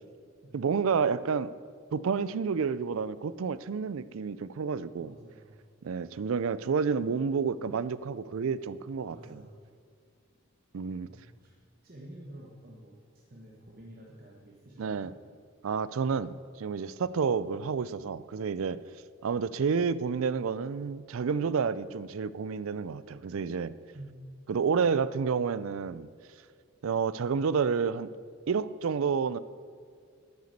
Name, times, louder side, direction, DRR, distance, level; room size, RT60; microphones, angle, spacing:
voice 1, 0.5-1.5 1.9-5.2 5.8-9.2 10.7-11.1 14.8-15.1 15.6-18.8 19.2-23.7 24.5-26.1 26.8-28.1 28.5-29.4, right 5 dB, 75° right, 17 dB, 0.4 m, -30 dB
voice 2, 5.0-5.6 9.1-9.5 11.1-11.5 11.8-13.0 13.3-15.1 23.9-24.2, right 1 dB, 45° right, -3 dB, 1.3 m, -49 dB
9.5 x 9.1 x 6.6 m, 2.2 s
head